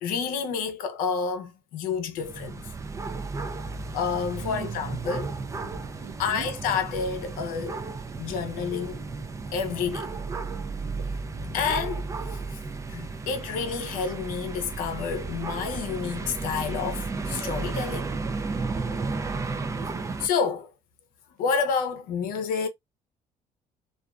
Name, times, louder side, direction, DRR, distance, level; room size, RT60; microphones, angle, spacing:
voice 1, 0.0-2.6 3.9-5.3 6.2-7.8 8.2-9.1 9.5-10.1 11.5-12.1 12.9-18.1 20.2-20.7 21.4-22.7, left 6 dB, 85° left, 0.6 m, -29 dB
sound 1, 2.2-20.3, right 4 dB, 20° right, 0.4 m, -33 dB
voice 2, 4.4-5.0 6.0-6.5 10.1-11.1, right 6 dB, 60° right, 0.6 m, -43 dB
2.4 x 2.2 x 2.3 m
cardioid pair, 100°, 14 cm